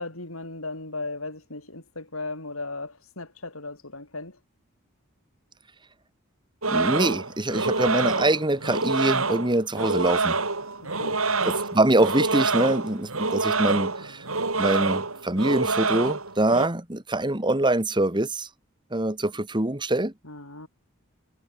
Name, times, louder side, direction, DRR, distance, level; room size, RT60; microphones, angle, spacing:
voice 1, 0.0-4.4 10.8-11.2 20.2-20.7, left 3 dB, 75° left, 5.6 m, -36 dB
sound 1, 6.6-16.7, right 3 dB, 80° right, 5.6 m, -26 dB
voice 2, 6.7-10.4 11.4-14.2 14.6-18.5 18.9-20.1, right 1 dB, 20° right, 2.0 m, -24 dB
head